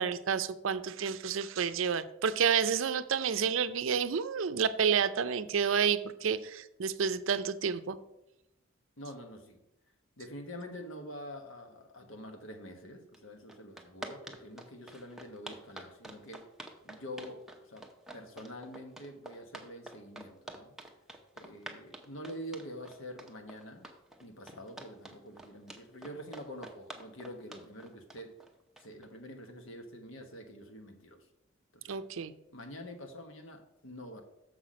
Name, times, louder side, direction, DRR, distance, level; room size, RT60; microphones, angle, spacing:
voice 1, 0.0-8.0 31.9-32.3, right 6 dB, 75° right, 13 dB, 0.5 m, -30 dB
voice 2, 9.0-9.6 10.2-16.5 16.8-17.8 18.1-20.7 21.4-23.9 24.2-28.4 28.8-31.3 31.7-32.0 32.5-34.2, equal, 75° left, 5 dB, 1.2 m, -46 dB
sound 1, 13.1-13.2 13.5-29.1, right 1 dB, ahead, 0.7 m, -47 dB
6.9 x 5.9 x 5.0 m, 0.87 s
head